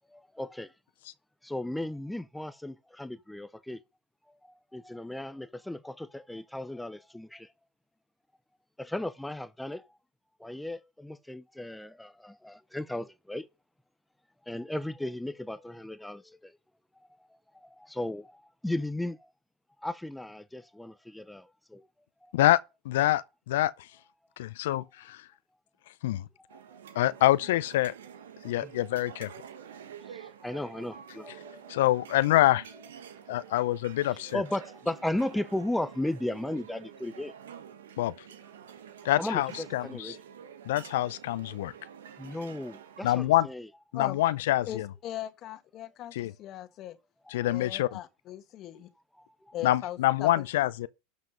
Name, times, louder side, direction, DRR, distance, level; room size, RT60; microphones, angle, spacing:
voice 1, 0.1-0.7 1.4-3.8 4.3-7.5 8.8-9.9 10.4-13.5 14.5-16.6 17.5-19.3 19.8-21.9 22.2-22.3 26.5-26.8 28.4-28.7 30.0-31.8 33.3-33.7 34.0-37.3 39.2-40.2 42.2-43.7 47.4-47.5 49.2-49.3, left 1 dB, 5° left, 0.6 m, -36 dB
voice 2, 22.9-23.7 24.4-25.2 26.0-26.2 27.0-27.9 28.4-29.3 31.7-32.7 33.3-34.4 38.0-38.1 39.0-40.2 40.7-41.7 43.0-43.5 43.9-44.9 46.1-46.3 47.3-48.0 49.6-50.9, left 15 dB, 75° left, 0.5 m, -26 dB
sound 1, 26.5-43.2, right 8 dB, 85° right, 1.3 m, -48 dB
voice 3, 44.6-47.0 47.4-48.9 49.5-50.4, left 12 dB, 45° left, 1.6 m, -39 dB
12.0 x 5.2 x 5.2 m
hypercardioid pair, 105°, 0 cm